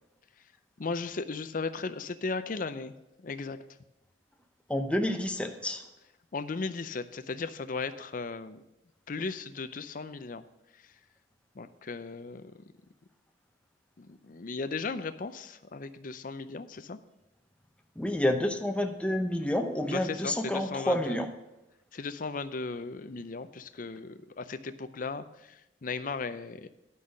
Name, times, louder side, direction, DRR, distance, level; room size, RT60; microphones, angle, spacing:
voice 1, 0.8-2.9 3.2-3.6 6.3-8.6 9.1-10.4 11.6-12.5 14.0-17.0 19.8-21.2 21.9-26.7, left 4 dB, 45° left, 11 dB, 0.5 m, -36 dB
voice 2, 4.7-5.8 18.0-21.3, left 1 dB, 5° left, 5 dB, 0.7 m, -29 dB
10.0 x 5.6 x 6.4 m, 0.94 s
head